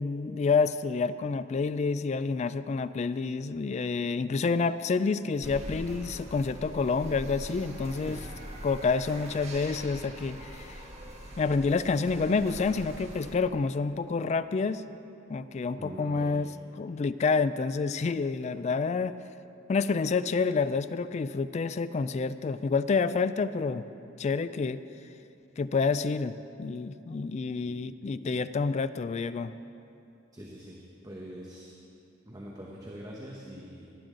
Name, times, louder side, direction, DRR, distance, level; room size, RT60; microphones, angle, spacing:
voice 1, 0.0-8.2 8.6-10.8 11.4-14.8 15.3-16.5 16.8-19.2 19.7-23.9 24.2-24.8 25.6-29.5, left 4 dB, 35° left, 13 dB, 0.3 m, -28 dB
sound 1, 5.4-13.4, right 1 dB, 35° right, 1.5 m, -43 dB
voice 2, 15.7-16.3 30.3-30.8 31.0-31.7 32.3-33.9, right 1 dB, 20° right, -3 dB, 1.0 m, -43 dB
18.0 x 10.5 x 3.9 m, 2.7 s
head